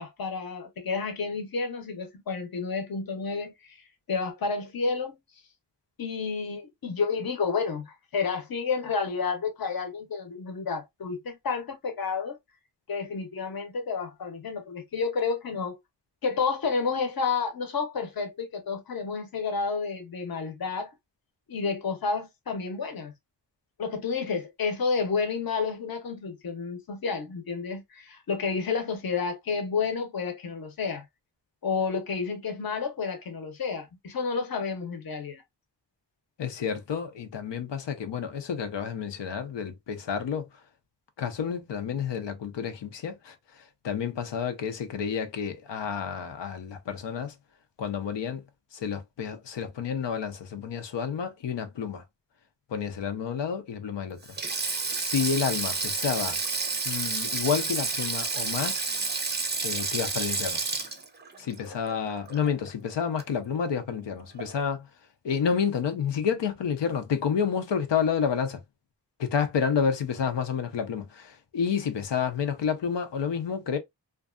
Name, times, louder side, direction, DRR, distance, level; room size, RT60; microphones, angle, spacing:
voice 1, 0.0-3.8 4.1-5.2 6.0-12.4 12.9-15.8 16.2-20.9 21.5-23.1 23.8-31.0 31.6-35.4, left 5 dB, 55° left, 0.8 m, -30 dB
voice 2, 36.4-40.6 41.2-47.3 47.8-48.4 48.7-52.0 52.7-54.3 54.9-56.4 56.8-58.9 59.6-60.6 61.4-64.9 65.2-68.6 69.2-73.8, left 7 dB, 90° left, 0.6 m, -30 dB
Sink (filling or washing), 54.2-62.7 63.0-63.2 64.4-64.6, right 4 dB, 25° right, 0.5 m, -30 dB
2.5 x 2.3 x 2.3 m
wide cardioid pair, 90°, 42 cm